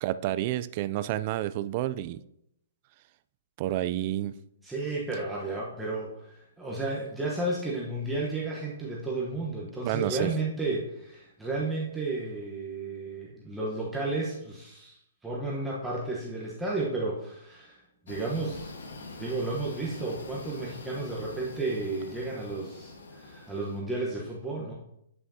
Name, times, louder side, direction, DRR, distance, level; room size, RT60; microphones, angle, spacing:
voice 1, 0.0-2.2 3.6-4.4 9.8-10.3, right 14 dB, 40° right, 14 dB, 0.3 m, -30 dB
voice 2, 4.6-18.7 19.2-24.7, right 2 dB, 5° right, -4 dB, 1.0 m, -33 dB
sound 1, 18.1-23.8, left 3 dB, 85° left, 1.3 m, -44 dB
9.8 x 5.7 x 2.7 m, 0.78 s
hypercardioid pair, 145°, 0 cm